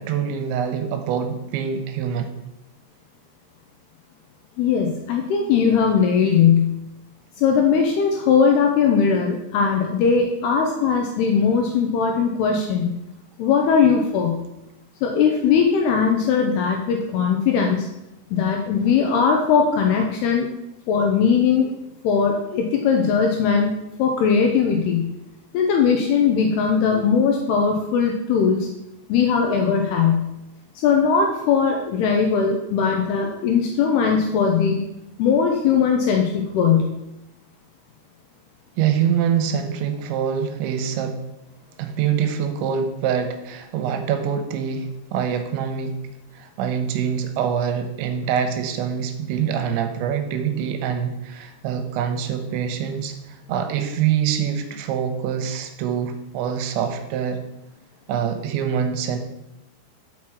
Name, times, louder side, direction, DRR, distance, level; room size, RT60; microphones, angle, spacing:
voice 1, 0.0-2.3 38.8-41.2 41.8-46.0 46.3-57.4 58.1-59.2, right 8 dB, 90° right, 7 dB, 3.0 m, -25 dB
voice 2, 4.6-6.7 7.4-13.0 13.4-14.4 15.0-17.9 18.3-20.5 20.9-21.7 22.0-23.7 24.0-25.1 25.5-28.7 29.1-30.3 30.8-34.8 35.2-36.9, left 6 dB, 80° left, 2 dB, 2.4 m, -19 dB
6.0 x 5.9 x 4.6 m, 0.89 s
omnidirectional pair, 5.2 m